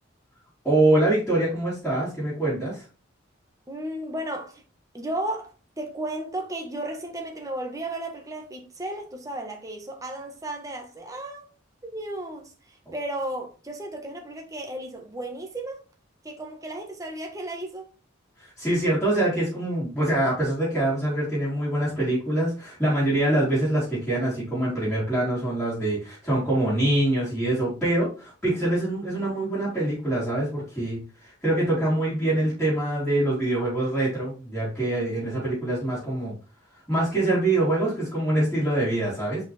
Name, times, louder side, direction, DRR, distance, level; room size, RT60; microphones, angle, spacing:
voice 1, 0.6-2.8 18.4-36.3 36.9-39.4, right 1 dB, 5° left, 3.4 m, -24 dB
voice 2, 3.7-4.6 4.9-11.5 11.8-15.8 16.2-17.9 35.0-35.5, right 1 dB, 15° right, 1.4 m, -34 dB
5.9 x 5.4 x 3.4 m
head